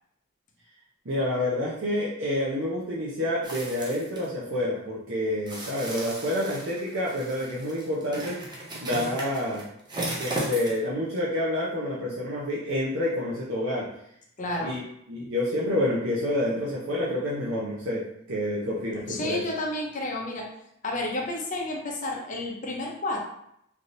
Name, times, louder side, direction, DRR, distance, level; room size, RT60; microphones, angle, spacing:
voice 1, 1.1-8.4 8.8-9.7 10.2-13.9 14.6-14.8 15.1-19.4, left 1 dB, 70° right, -7 dB, 0.6 m, -28 dB
sound 1, 3.4-4.2 5.5-10.9 11.2-11.3, right 1 dB, 20° right, 0.5 m, -35 dB
voice 2, 14.4-14.8 19.1-20.5 20.8-23.2, left 1 dB, 40° left, 0 dB, 0.6 m, -31 dB
3.3 x 2.7 x 2.5 m, 0.74 s
head